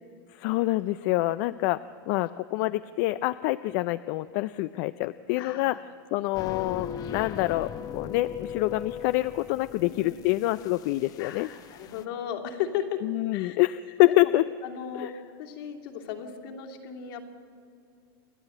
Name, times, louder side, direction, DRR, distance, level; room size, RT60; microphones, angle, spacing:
voice 1, 0.4-1.8 2.1-5.8 6.1-11.5 13.0-14.4 14.9-15.1, left 18 dB, 50° left, 14 dB, 0.4 m, -26 dB
voice 2, 5.4-5.8 9.8-10.1 11.2-13.0 13.3-13.6 14.1-14.3 14.6-15.1 15.4-17.2, left 9 dB, 65° left, 3 dB, 2.7 m, -35 dB
sound 1, 6.3-12.0, left 8 dB, 30° left, 0.8 m, -39 dB
28.0 x 10.5 x 9.1 m, 2.4 s
supercardioid pair, 145°, 13 cm